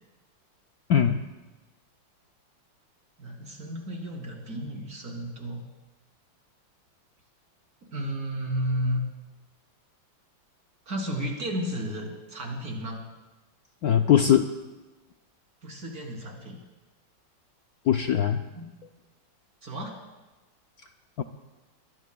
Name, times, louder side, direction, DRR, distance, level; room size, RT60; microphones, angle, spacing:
voice 1, 0.9-1.2 13.8-14.5 17.9-18.4 21.2-21.3, left 9 dB, 65° left, 5 dB, 1.0 m, -21 dB
voice 2, 3.2-5.6 7.9-9.0 10.9-13.0 15.6-16.6 18.6-18.7 19.6-19.9, equal, 50° right, -1 dB, 3.7 m, -32 dB
24.0 x 22.5 x 2.3 m, 1.1 s
omnidirectional pair, 2.1 m